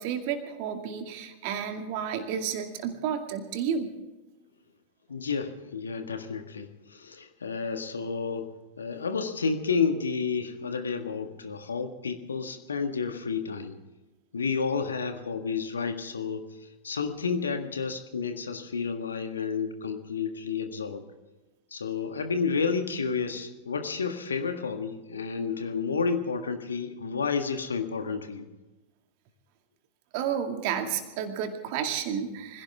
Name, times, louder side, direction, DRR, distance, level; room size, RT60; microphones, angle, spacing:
voice 1, 0.0-3.9 30.1-32.6, right 8 dB, 45° right, 5 dB, 2.2 m, -31 dB
voice 2, 5.1-8.5 8.8-13.7 14.3-16.5 16.8-21.0 21.7-28.5, left 5 dB, 70° left, 7 dB, 1.7 m, -30 dB
25.0 x 16.5 x 3.6 m, 1.1 s
figure-of-eight pair, 90°, 0 cm